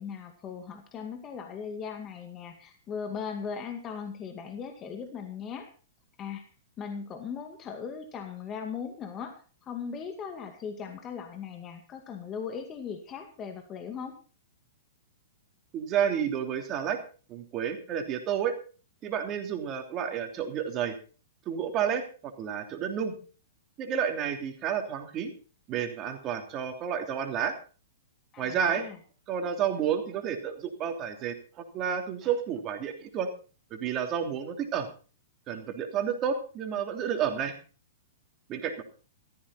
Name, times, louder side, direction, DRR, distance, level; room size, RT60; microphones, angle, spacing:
voice 1, 0.0-5.7 6.2-6.5 6.8-14.2 28.3-29.0, left 6 dB, 30° left, 6 dB, 2.2 m, -38 dB
voice 2, 15.7-17.0 17.3-18.6 19.0-21.0 21.4-23.2 23.8-25.3 25.7-27.5 28.4-28.8 29.3-33.3 33.7-34.9 35.5-37.6 38.5-38.8, right 8 dB, 30° right, 5 dB, 3.1 m, -30 dB
15.5 x 14.0 x 4.2 m, 0.38 s
hypercardioid pair, 110°, 0 cm